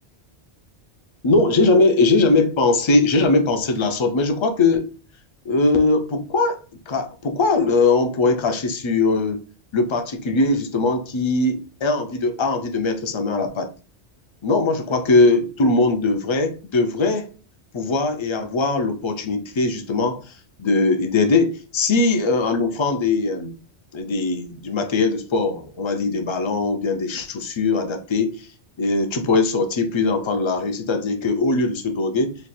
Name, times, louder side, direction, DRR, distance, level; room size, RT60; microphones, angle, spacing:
voice 1, 1.2-4.9 5.4-6.6 6.9-9.4 9.7-13.7 14.4-17.3 17.7-20.3 20.6-23.5 23.9-28.5 28.8-32.4, left 3 dB, 45° left, 0.4 m, -20 dB
3.2 x 2.3 x 4.2 m
omnidirectional pair, 1.1 m